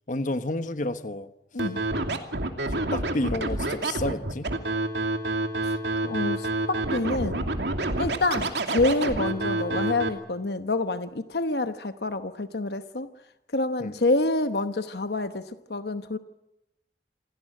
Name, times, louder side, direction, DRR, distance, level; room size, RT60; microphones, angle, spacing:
voice 1, 0.1-1.3 2.9-4.5 13.8-13.9, left 1 dB, 45° left, 1.2 m, -30 dB
Scratching (performance technique), 1.6-10.1, right 2 dB, 75° right, 2.7 m, -28 dB
voice 2, 6.0-7.5 8.0-13.1 13.5-16.2, left 2 dB, 65° left, 1.0 m, -27 dB
27.5 x 17.5 x 9.1 m
head